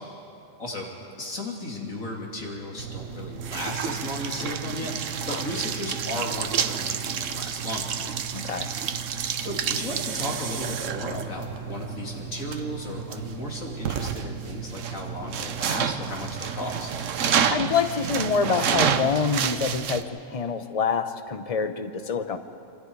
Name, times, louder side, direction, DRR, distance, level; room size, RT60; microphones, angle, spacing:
voice 1, 1.2-7.9 9.4-16.9, left 1 dB, 80° left, -2 dB, 3.5 m, -34 dB
sound 1, 2.8-20.0, right 7 dB, 75° right, 1.2 m, -29 dB
voice 2, 8.3-8.7 17.5-22.4, left 5 dB, 30° left, 9 dB, 0.9 m, -26 dB
27.0 x 26.0 x 4.8 m, 2.6 s
omnidirectional pair, 1.4 m